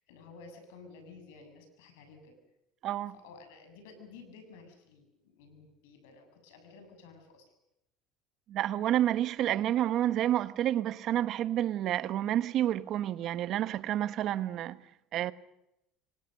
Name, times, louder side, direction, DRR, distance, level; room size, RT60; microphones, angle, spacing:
voice 1, 0.0-2.4 3.1-7.5, left 4 dB, 90° left, 7.2 m, -53 dB
voice 2, 2.8-3.1 8.5-14.8 15.1-15.3, right 12 dB, 55° right, 1.2 m, -29 dB
28.0 x 24.0 x 6.6 m
supercardioid pair, 115°, 0 cm